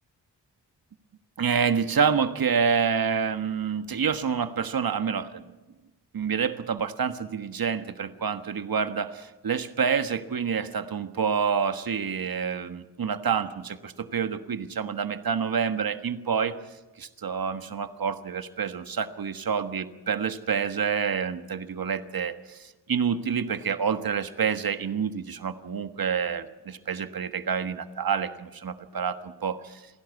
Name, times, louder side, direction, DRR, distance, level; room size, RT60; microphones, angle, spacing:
voice 1, 1.4-5.4 6.1-16.5 17.0-29.8, right 6 dB, 55° right, 10 dB, 1.5 m, -28 dB
29.0 x 11.5 x 8.4 m, 1.1 s
cardioid pair, 55°, 42 cm